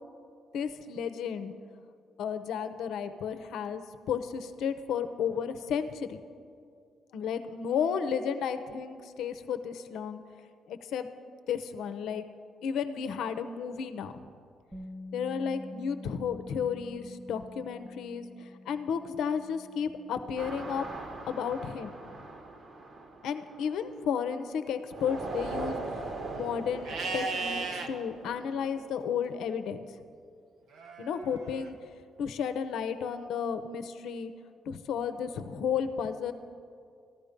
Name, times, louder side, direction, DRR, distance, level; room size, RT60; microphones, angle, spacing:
voice 1, 0.5-1.5 2.2-6.2 7.1-10.2 10.7-11.1 11.5-12.2 12.6-14.1 15.1-20.9 21.3-22.0 23.2-29.8 31.0-31.8 32.2-34.3 34.7-36.3, left 7 dB, 80° left, 9 dB, 0.8 m, -33 dB
Bass guitar, 14.7-21.0, left 2 dB, 10° right, 1.2 m, -47 dB
sound 1, 20.4-24.4 24.9-29.0, right 3 dB, 50° right, 1.6 m, -41 dB
Livestock farm animals working animals, 26.8-27.9 30.7-31.7, right 4 dB, 70° right, 1.1 m, -35 dB
14.5 x 12.0 x 5.2 m, 2.3 s
cardioid pair, 90°, 0 cm